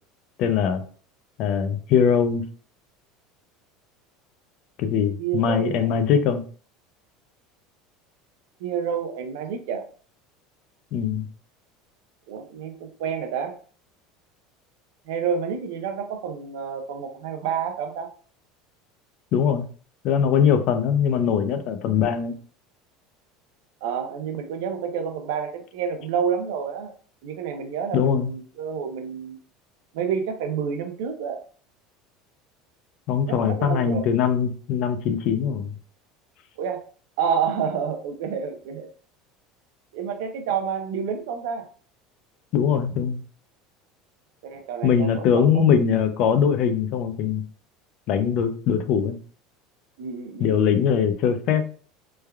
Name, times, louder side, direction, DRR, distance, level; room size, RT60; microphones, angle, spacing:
voice 1, 0.4-0.8 1.4-2.4 4.8-6.4 10.9-11.3 19.3-19.7 20.0-22.4 27.9-28.3 33.1-35.7 42.5-43.2 44.8-47.4 48.1-49.2 50.4-51.6, left 7 dB, 45° left, 9 dB, 0.4 m, -21 dB
voice 2, 5.2-5.9 8.6-9.9 12.3-13.6 15.1-18.1 23.8-26.9 27.2-29.4 29.9-31.4 33.3-34.1 36.6-36.8 37.2-38.9 39.9-41.7 44.4-45.7 50.0-50.8, right 7 dB, 75° right, 6 dB, 0.5 m, -29 dB
3.2 x 2.3 x 2.2 m, 0.42 s
cardioid pair, 160°, 0 cm